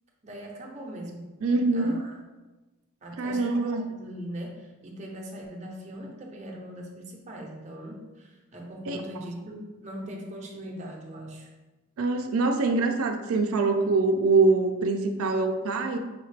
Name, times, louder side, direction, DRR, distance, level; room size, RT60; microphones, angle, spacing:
voice 1, 0.2-1.4 1.7-2.2 3.0-11.5, equal, 35° right, 0 dB, 0.6 m, -40 dB
voice 2, 1.4-2.0 3.2-3.9 8.9-9.0 12.0-16.0, right 3 dB, 90° right, 5 dB, 0.4 m, -24 dB
5.5 x 2.4 x 3.2 m, 1.1 s
head